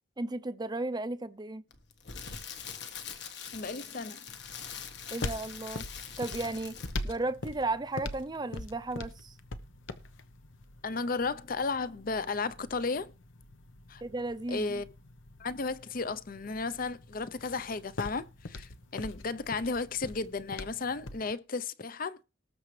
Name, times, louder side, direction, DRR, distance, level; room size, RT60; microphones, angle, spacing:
voice 1, 0.2-1.6 5.1-5.8 6.2-6.8 7.0-9.3 14.0-14.8, right 2 dB, 20° right, 0.5 m, -34 dB
Crackle, 1.7-7.2 7.5-7.6, left 7 dB, 65° left, 1.4 m, -43 dB
voice 2, 3.5-4.2 10.8-13.1 13.9-14.0 14.5-14.9 15.4-22.2, left 4 dB, 45° left, 0.6 m, -34 dB
sound 1, 4.3-21.3, left 2 dB, 85° left, 1.0 m, -43 dB
19.0 x 6.9 x 3.3 m
head